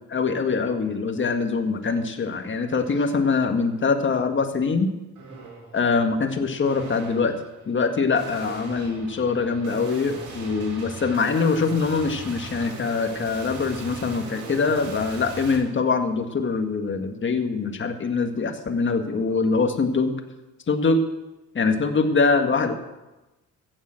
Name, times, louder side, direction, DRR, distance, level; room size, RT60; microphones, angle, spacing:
voice 1, 0.1-4.9 5.7-7.3 7.7-20.2 20.7-21.0 21.5-22.7, left 4 dB, 40° left, 6 dB, 1.7 m, -23 dB
sound 1, 1.8-2.0 2.4-3.1 3.7-4.1 5.2-5.8 6.6-15.6, right 3 dB, 90° right, 3.8 m, -39 dB
15.5 x 7.3 x 7.6 m, 1.1 s
cardioid pair, 90°, 30 cm